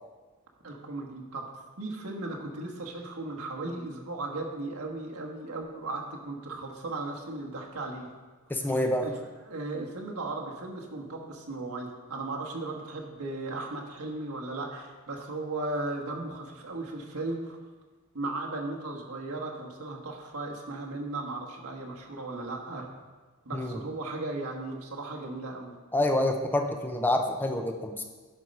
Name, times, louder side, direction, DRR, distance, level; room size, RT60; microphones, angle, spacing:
voice 1, 0.6-1.5 1.8-8.1 8.7-17.6 18.1-22.9 23.4-25.7, right 2 dB, 80° right, 0 dB, 1.5 m, -36 dB
voice 2, 8.5-9.1 23.5-23.8 25.9-28.0, left 1 dB, 10° left, 5 dB, 0.5 m, -27 dB
10.5 x 4.6 x 5.4 m, 1.3 s
head